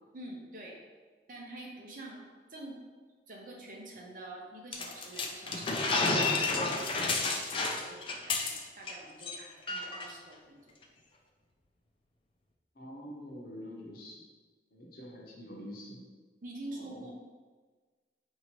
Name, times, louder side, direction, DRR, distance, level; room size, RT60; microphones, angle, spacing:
voice 1, 0.1-0.8 1.3-2.2 2.5-2.8 3.3-10.7 16.4-17.1, right 1 dB, 50° right, -1 dB, 0.7 m, -47 dB
sound 1, 4.7-8.9 9.2-9.4 9.7-10.1, left 3 dB, 30° left, 0.3 m, -31 dB
voice 2, 12.8-14.2 14.7-16.1 16.7-17.1, equal, 55° left, -2 dB, 0.8 m, -46 dB
4.9 x 2.8 x 3.0 m, 1.4 s
head